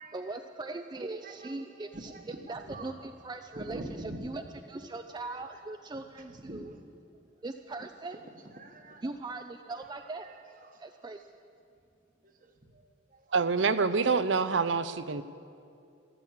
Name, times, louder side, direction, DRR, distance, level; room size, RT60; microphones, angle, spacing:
voice 1, 0.1-2.1 2.5-4.4 4.7-6.7 7.4-8.2 9.0-10.3 10.8-11.2, right 2 dB, 25° right, 7 dB, 0.4 m, -40 dB
voice 2, 1.2-1.6 1.9-3.0 3.5-4.3 5.2-5.6 6.3-6.8 8.5-9.0 9.8-9.9 10.2-10.3 10.6-10.8 12.2-12.8 13.1-13.2, right 1 dB, 45° right, 5 dB, 1.4 m, -45 dB
voice 3, 13.3-15.2, right 4 dB, 75° right, 12 dB, 0.6 m, -26 dB
14.0 x 13.5 x 7.3 m, 2.4 s
head